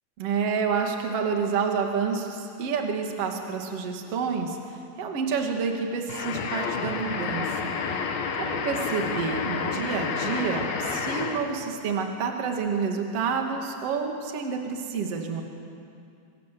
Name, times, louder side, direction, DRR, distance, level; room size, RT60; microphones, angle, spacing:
voice 1, 0.2-7.7 8.4-15.4, right 5 dB, 40° right, 2 dB, 2.7 m, -29 dB
sound 1, 6.1-11.6, left 5 dB, 65° left, 3.3 m, -30 dB
26.5 x 24.0 x 7.8 m, 2.5 s
omnidirectional pair, 5.2 m